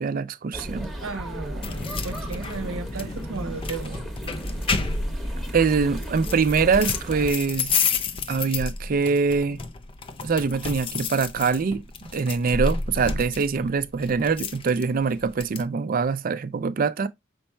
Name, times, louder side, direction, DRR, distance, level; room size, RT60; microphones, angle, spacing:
voice 1, 0.0-0.9 5.5-7.8 8.3-9.6 10.2-17.1, right 5 dB, 45° right, 0.4 m, -24 dB
sound 1, 0.5-7.3, equal, ahead, 0.9 m, -34 dB
voice 2, 1.0-4.0, right 3 dB, 75° right, 0.7 m, -35 dB
sound 2, 1.6-15.7, left 4 dB, 25° left, 0.4 m, -31 dB
5.3 x 4.2 x 2.2 m
head